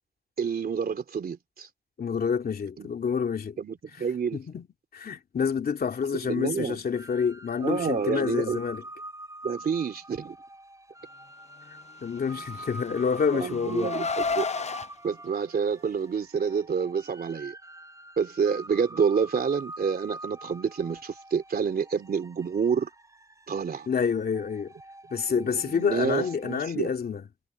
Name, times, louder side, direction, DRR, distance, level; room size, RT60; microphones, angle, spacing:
voice 1, 0.4-1.7 2.8-2.9 3.6-4.4 6.2-6.8 7.6-8.6 9.4-10.4 13.3-14.4 15.0-17.5 18.2-22.9 23.5-23.9 25.6-26.9, right 6 dB, 85° right, 3.4 m, -28 dB
voice 2, 2.0-3.6 3.9-4.0 4.3-4.7 4.9-8.8 12.0-13.9 23.9-24.7 25.1-27.2, left 6 dB, 85° left, 2.8 m, -28 dB
sound 1, 6.9-26.7, right 1 dB, 20° right, 5.6 m, -45 dB
Car, 12.4-14.9, left 4 dB, 45° left, 0.7 m, -32 dB
wide cardioid pair, 90°, 15 cm